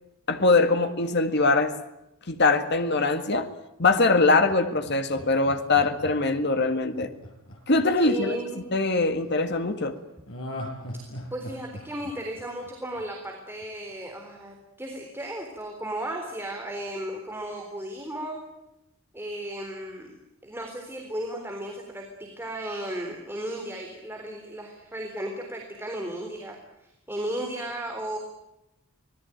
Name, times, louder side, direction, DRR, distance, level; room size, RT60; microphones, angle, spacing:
voice 1, 0.3-1.7 2.3-3.5 3.8-7.1 7.7-8.4 8.7-10.0, left 3 dB, 55° left, 7 dB, 2.0 m, -22 dB
Laughter, 4.5-8.7 10.3-13.3 13.6-13.7, left 1 dB, 70° left, 6.2 m, -40 dB
voice 2, 8.0-8.6 11.3-18.4 19.1-20.2 20.4-28.2, right 1 dB, 10° right, 1 dB, 3.8 m, -35 dB
26.0 x 19.5 x 9.2 m, 0.90 s
head